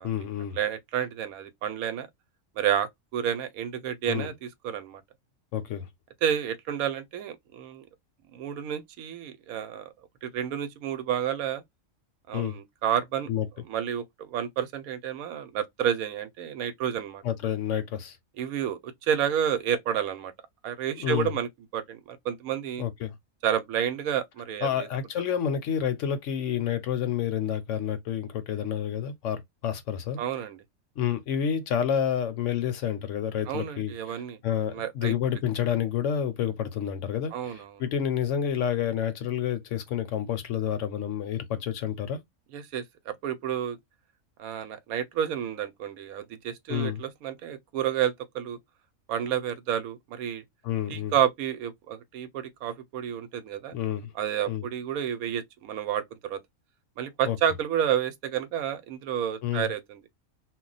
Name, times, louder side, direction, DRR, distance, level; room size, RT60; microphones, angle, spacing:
voice 1, 0.0-0.6 4.1-4.3 5.5-5.9 12.3-12.6 13.3-13.5 17.2-18.2 20.9-21.3 22.8-23.1 24.6-30.2 31.0-42.2 46.7-47.0 50.6-51.1 53.7-54.1 54.5-54.6 57.2-57.4 59.4-59.7, left 9 dB, 70° left, 0.8 m, -29 dB
voice 2, 0.5-2.1 2.6-5.0 6.2-7.9 8.3-9.9 10.2-11.6 12.3-13.3 13.7-17.2 18.4-20.3 20.6-22.8 23.4-24.9 30.2-30.6 33.5-34.4 34.7-35.1 37.3-37.8 42.5-43.8 44.4-48.6 49.1-50.4 50.9-53.8 54.1-56.4 57.0-60.0, right 9 dB, 85° right, 1.0 m, -30 dB
2.4 x 2.1 x 3.8 m
omnidirectional pair, 1.5 m